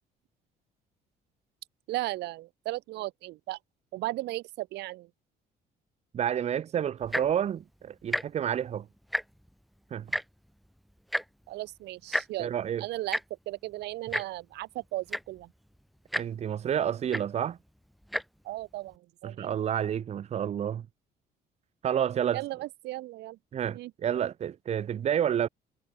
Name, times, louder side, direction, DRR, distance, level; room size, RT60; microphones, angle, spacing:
voice 1, 1.9-3.6 3.9-5.1 11.5-12.5 12.8-13.2 13.5-15.5 18.4-19.5 22.3-23.4 23.7-23.9, right 18 dB, 85° right, 5.7 m, -36 dB
voice 2, 6.1-8.9 9.9-10.1 12.4-12.8 16.2-17.6 19.2-20.9 21.8-22.4 23.5-25.5, right 9 dB, 40° right, 0.7 m, -29 dB
Tick-tock, 7.0-7.4 8.0-8.2 8.5-8.7 9.0-9.5 10.1-10.2 11.1-11.2 12.1-12.3 13.1-13.2 14.1-14.2 14.8-14.9 15.1-15.4 16.1-16.2 17.1-17.2 18.0-18.2 18.9-19.0, equal, ahead, 2.1 m, -30 dB
cardioid pair, 110°, 17 cm